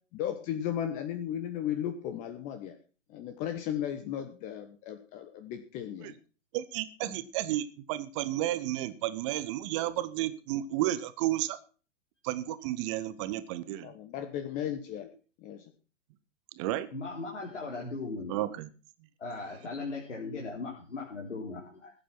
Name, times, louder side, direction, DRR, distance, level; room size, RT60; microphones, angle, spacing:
voice 1, 0.1-2.8 3.1-6.2 7.1-7.2 13.8-15.1 15.4-15.6, left 10 dB, 20° left, 8 dB, 1.1 m, -35 dB
voice 2, 6.5-11.6 12.2-13.9 16.6-16.9 18.3-18.7, right 14 dB, 25° right, 15 dB, 0.9 m, -32 dB
voice 3, 16.9-18.3 19.2-21.9, left 3 dB, 65° left, -2 dB, 3.6 m, -38 dB
16.0 x 8.7 x 5.9 m, 0.38 s
figure-of-eight pair, 120°, 37 cm